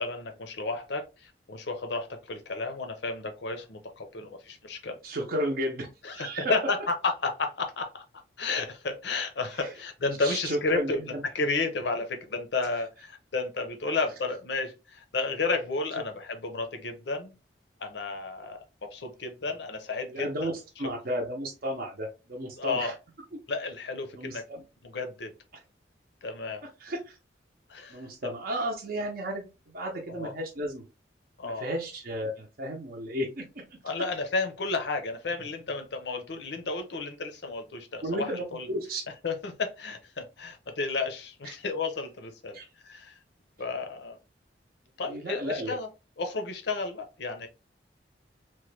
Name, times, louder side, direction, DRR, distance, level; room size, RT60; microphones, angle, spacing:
voice 1, 0.0-5.0 6.0-8.0 8.4-17.3 17.8-18.6 18.9-20.5 22.6-22.9 23.5-24.4 24.8-25.3 26.2-26.6 27.7-28.0 30.1-30.3 31.4-31.7 33.8-38.7 39.2-42.6 42.8-43.2 43.6-44.2 45.0-45.9 46.2-47.5, left 3 dB, 70° left, 6 dB, 0.6 m, -32 dB
voice 2, 5.0-6.5 9.6-9.7 10.2-11.2 12.7-12.8 20.1-20.5 20.8-22.9 23.3-23.4 24.1-24.6 26.6-27.2 27.9-30.8 31.4-33.4 38.0-39.0 41.4-41.5 42.5-42.7 45.1-45.8, equal, 55° right, -1 dB, 0.6 m, -33 dB
3.0 x 2.2 x 3.1 m, 0.29 s
head